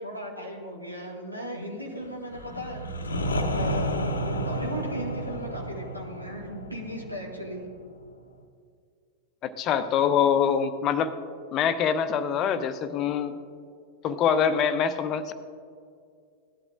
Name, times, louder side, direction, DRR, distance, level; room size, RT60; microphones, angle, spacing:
voice 1, 0.0-2.9 3.5-7.6, equal, 85° right, -1 dB, 1.9 m, -37 dB
sound 1, 2.3-8.1, equal, 75° left, 0.8 m, -31 dB
voice 2, 9.4-11.1 11.5-13.4 14.0-15.3, left 7 dB, 35° left, 11 dB, 0.7 m, -24 dB
17.5 x 11.0 x 2.5 m, 2.3 s
figure-of-eight pair, 90°, 0 cm